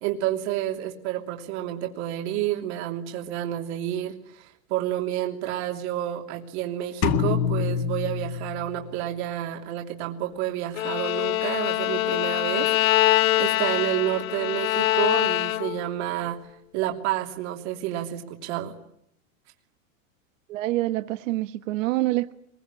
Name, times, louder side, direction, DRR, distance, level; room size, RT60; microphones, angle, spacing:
voice 1, 0.0-12.7 13.1-16.4 16.7-18.7, right 13 dB, 55° right, 3.2 m, -30 dB
sound 1, 7.0-9.0, left 7 dB, 55° left, 2.0 m, -26 dB
Bowed string instrument, 10.7-15.9, left 16 dB, 80° left, 1.2 m, -24 dB
voice 2, 20.5-22.3, right 17 dB, 70° right, 1.3 m, -26 dB
24.0 x 22.5 x 10.0 m
supercardioid pair, 150°, 40 cm